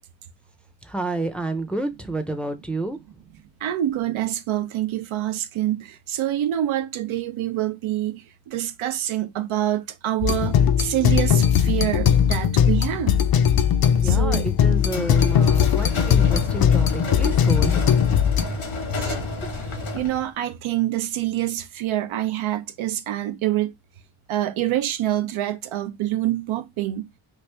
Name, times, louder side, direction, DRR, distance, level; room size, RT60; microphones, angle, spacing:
voice 1, 0.8-3.0 14.0-17.8, right 2 dB, ahead, 0.5 m, -29 dB
voice 2, 3.6-13.2 14.0-14.5 19.0-19.3 19.5-23.7 24.3-27.1, right 13 dB, 85° right, 0.6 m, -26 dB
sound 1, 10.2-18.4, left 8 dB, 50° left, 0.5 m, -19 dB
sound 2, 14.8-20.3, left 2 dB, 80° left, 1.3 m, -30 dB
3.2 x 2.5 x 3.3 m
cardioid pair, 75°, 47 cm